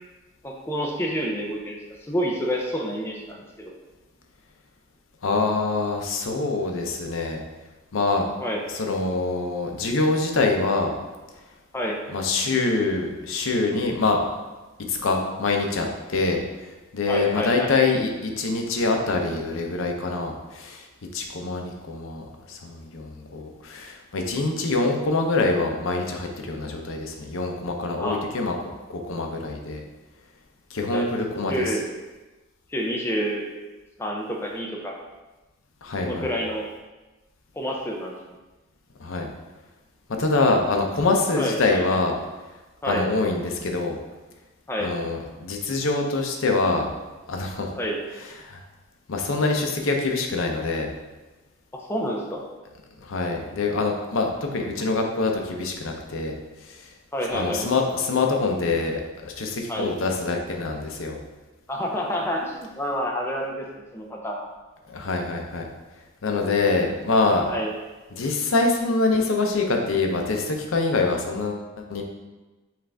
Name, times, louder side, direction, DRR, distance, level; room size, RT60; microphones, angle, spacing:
voice 1, 0.4-1.8 2.1-3.7 8.4-8.8 11.7-12.0 17.1-17.8 28.0-28.2 30.9-31.1 31.5-31.9 32.7-33.5 34.0-34.9 36.0-36.7 37.5-38.1 41.4-42.0 42.8-43.1 44.7-44.9 47.8-48.0 51.7-52.4 57.1-57.6 59.7-59.9 61.7-63.7 63.9-64.4 67.5-67.7, equal, 10° left, 0 dB, 0.4 m, -28 dB
voice 2, 5.2-7.4 7.9-8.3 8.7-10.9 12.1-14.3 14.9-16.4 16.9-20.8 21.1-22.2 22.5-28.6 28.9-29.8 30.7-31.6 35.8-36.3 39.0-39.3 40.2-42.2 42.9-44.0 44.8-46.9 47.3-47.7 48.4-48.6 49.1-50.9 53.0-56.3 56.7-56.9 57.3-61.2 64.9-65.7 66.2-67.5 68.1-72.0, left 3 dB, 70° left, 3 dB, 0.6 m, -25 dB
5.7 x 2.5 x 3.3 m, 1.2 s
head